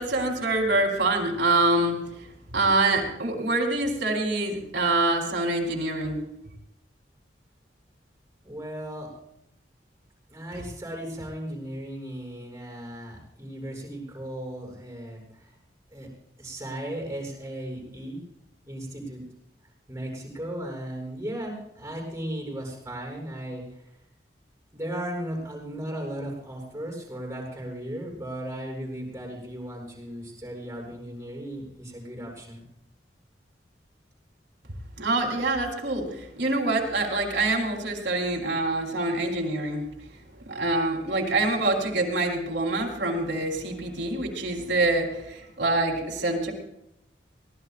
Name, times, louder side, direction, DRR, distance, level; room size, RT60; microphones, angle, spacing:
voice 1, 0.0-2.0 2.5-6.2 35.0-36.1 36.4-39.8 40.5-46.5, right 2 dB, 80° right, 1 dB, 4.2 m, -25 dB
voice 2, 8.4-9.1 10.3-15.5 15.9-16.1 16.4-18.2 18.7-19.2 19.9-23.9 24.7-32.6, right 1 dB, 15° right, -1 dB, 7.6 m, -36 dB
24.5 x 19.0 x 2.6 m, 0.80 s
head